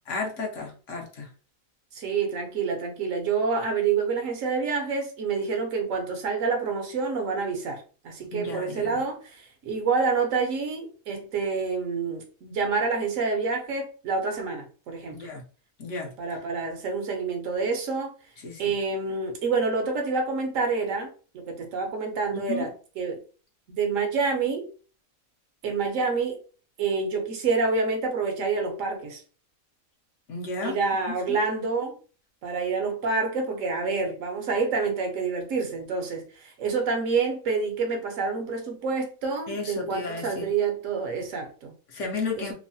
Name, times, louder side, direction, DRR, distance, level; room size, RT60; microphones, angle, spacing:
voice 1, 0.1-1.3 8.3-9.0 15.1-15.4 15.8-16.1 18.4-18.7 22.5-22.7 30.3-30.7 31.1-31.4 39.5-40.5 41.9-42.5, left 3 dB, 65° left, 1.0 m, -33 dB
voice 2, 1.9-15.3 16.2-18.1 18.6-22.7 23.0-23.2 23.7-24.7 25.6-26.4 26.8-29.2 30.6-32.0 32.4-41.7 42.4-42.5, right 4 dB, 70° right, 1.0 m, -28 dB
3.0 x 2.0 x 2.6 m
omnidirectional pair, 1.5 m